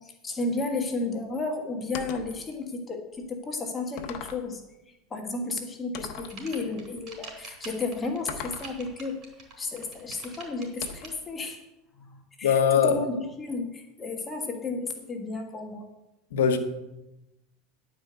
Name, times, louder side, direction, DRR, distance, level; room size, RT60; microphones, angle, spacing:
voice 1, 0.0-4.6 4.9-9.2 9.6-11.7 12.0-15.9, left 3 dB, 20° left, 3 dB, 1.4 m, -33 dB
sound 1, 1.9-2.4 3.2-3.3 4.0-4.5 5.9-6.4 8.3-8.8 10.8-11.2, left 7 dB, 60° left, 1.1 m, -39 dB
sound 2, 6.0-11.1, right 4 dB, 40° right, 3.9 m, -45 dB
voice 2, 12.4-13.0 16.3-16.6, left 7 dB, 90° left, 7 dB, 1.2 m, -21 dB
11.0 x 5.0 x 7.9 m, 0.95 s
supercardioid pair, 115°, 0 cm